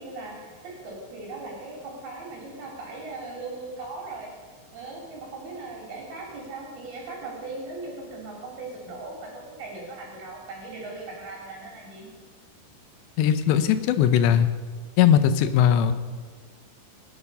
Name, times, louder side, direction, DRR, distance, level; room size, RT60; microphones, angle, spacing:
voice 1, 0.0-4.3 4.7-12.1, right 3 dB, 65° right, -2 dB, 5.0 m, -38 dB
voice 2, 13.2-14.5 15.0-15.9, left 9 dB, 85° left, 10 dB, 3.1 m, -19 dB
26.5 x 9.4 x 5.5 m, 1.5 s
omnidirectional pair, 4.9 m